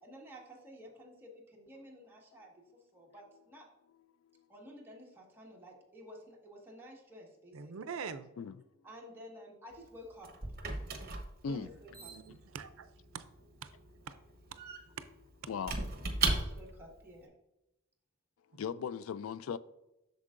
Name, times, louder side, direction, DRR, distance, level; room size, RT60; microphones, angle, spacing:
voice 1, 0.0-2.5 2.9-3.7 4.5-7.7 8.8-10.3 11.5-12.1 16.2-17.3, equal, 10° right, 1.5 m, -52 dB
voice 2, 7.5-8.3 11.5-13.2 13.6-13.7 14.1-14.2 14.5-14.6 15.0-15.1 18.5-18.6, right 6 dB, 80° right, 0.5 m, -44 dB
Squeak / Wood, 9.7-16.9, right 3 dB, 45° right, 1.0 m, -38 dB
voice 3, 15.5-16.2 18.5-19.6, left 6 dB, 80° left, 0.3 m, -38 dB
8.2 x 6.6 x 2.5 m
head